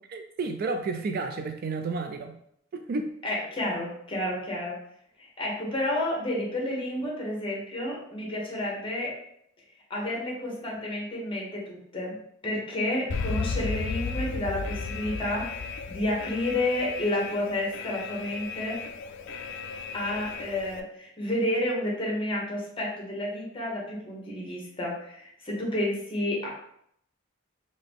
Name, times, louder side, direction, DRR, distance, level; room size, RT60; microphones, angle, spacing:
voice 1, 0.1-2.4 2.7-3.1, right 3 dB, 50° right, 6 dB, 0.3 m, -31 dB
voice 2, 3.2-4.7 5.2-9.1 9.9-12.2 12.4-18.8 19.9-26.5, left 1 dB, 25° left, -3 dB, 1.1 m, -30 dB
Alarm, 13.1-20.8, left 4 dB, 60° left, 0.3 m, -34 dB
3.8 x 2.6 x 3.5 m, 0.71 s
head